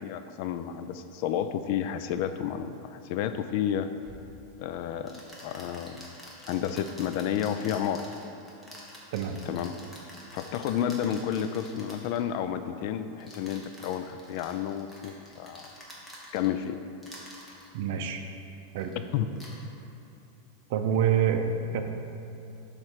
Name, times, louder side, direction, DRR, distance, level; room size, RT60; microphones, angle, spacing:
voice 1, 0.0-3.9 4.6-6.1 6.5-8.1 9.5-9.7 10.3-15.7 16.3-16.8 19.1-19.3, left 9 dB, 50° left, 10 dB, 0.3 m, -31 dB
sound 1, 4.0-4.2 5.1-12.2 13.2-16.7 17.0-17.7 18.8-18.9 19.3-19.6, equal, 5° left, 1.1 m, -48 dB
voice 2, 17.7-18.2 18.7-18.9 20.7-21.8, right 8 dB, 60° right, 5 dB, 0.6 m, -26 dB
7.8 x 3.2 x 5.7 m, 2.8 s
supercardioid pair, 155°, 0 cm